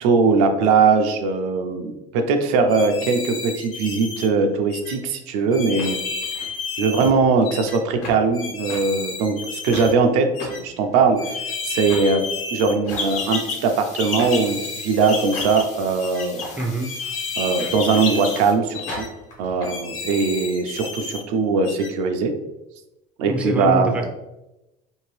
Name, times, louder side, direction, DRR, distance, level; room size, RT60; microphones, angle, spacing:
voice 1, 0.0-6.0 6.8-12.3 12.5-16.4 17.4-19.1 19.4-22.3 23.2-23.9, right 4 dB, 90° right, 5 dB, 0.5 m, -20 dB
sound 1, 2.7-4.3 4.7-5.0 5.5-7.1 7.4-7.8 8.3-9.9 10.3-10.6 11.1-12.8 13.1-13.4 14.0-15.6 16.0-16.3 16.8-18.4 18.7-19.1 19.6-21.2 21.6-21.9, left 4 dB, 85° left, 0.8 m, -32 dB
sound 2, 4.8-4.9 5.8-6.6 7.0-7.1 7.4-8.2 8.7-8.8 9.7-9.9 10.4-11.3 11.9-12.1 12.8-13.3 14.2-14.5 15.3-15.7 16.4-16.7 17.6-18.3 18.9-19.7, left 2 dB, 70° left, 1.2 m, -36 dB
sound 3, 12.9-18.5, left 4 dB, 45° left, 0.6 m, -32 dB
voice 2, 16.6-17.0 23.3-24.1, right 1 dB, 5° right, 3 dB, 0.4 m, -24 dB
2.7 x 2.5 x 3.1 m, 0.96 s
cardioid pair, 130°, 18 cm